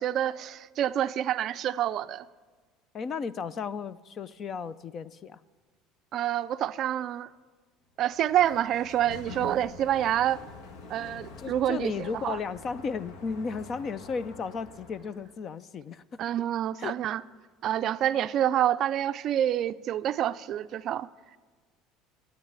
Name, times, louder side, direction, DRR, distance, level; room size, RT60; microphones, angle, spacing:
voice 1, 0.0-2.2 6.1-7.3 8.0-10.4 10.9-12.4 16.2-17.2 17.6-21.1, right 11 dB, 40° right, 0.4 m, -27 dB
voice 2, 2.9-5.4 11.4-16.2 16.8-17.0, left 5 dB, 30° left, 0.4 m, -34 dB
Sliding door, 8.0-15.4, left 3 dB, 70° left, 1.5 m, -46 dB
13.0 x 9.5 x 9.7 m
cardioid pair, 160°, 0 cm